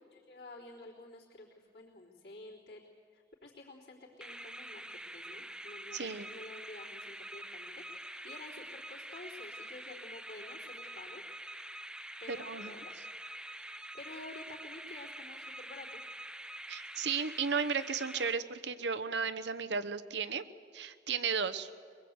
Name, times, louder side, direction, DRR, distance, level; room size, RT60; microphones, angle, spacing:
voice 1, 0.1-2.8 3.1-11.2 12.2-12.9 13.5-16.0, left 2 dB, 60° left, -7 dB, 3.7 m, -51 dB
sound 1, 4.2-18.9, right 1 dB, 5° right, 0.5 m, -46 dB
voice 2, 5.9-6.3 12.3-12.7 16.7-20.4 20.7-21.7, right 5 dB, 80° right, 10 dB, 1.0 m, -34 dB
23.0 x 21.5 x 8.1 m, 2.1 s
head